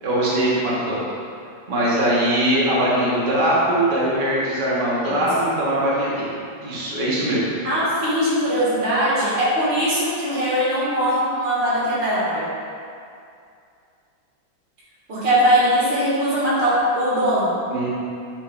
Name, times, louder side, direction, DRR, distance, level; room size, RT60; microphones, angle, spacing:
voice 1, 0.0-1.1 1.7-7.4 17.7-17.9, right 1 dB, 30° right, -8 dB, 1.1 m, -21 dB
voice 2, 7.6-12.4 15.1-17.5, equal, 65° right, -8 dB, 2.2 m, -20 dB
7.6 x 4.9 x 2.5 m, 2.4 s
omnidirectional pair, 2.2 m